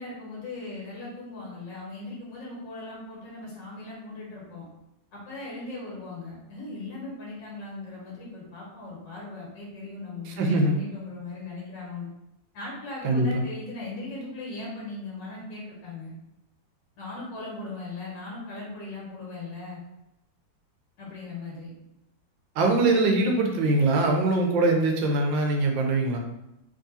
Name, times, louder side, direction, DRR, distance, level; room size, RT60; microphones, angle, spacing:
voice 1, 0.0-4.7 5.1-12.1 12.5-16.1 17.0-19.8 21.0-21.7, left 3 dB, 70° left, -5 dB, 2.0 m, -38 dB
voice 2, 10.3-10.8 13.0-13.4 22.6-26.2, right 2 dB, 85° right, 2 dB, 1.4 m, -22 dB
3.6 x 3.5 x 2.7 m, 0.88 s
omnidirectional pair, 2.0 m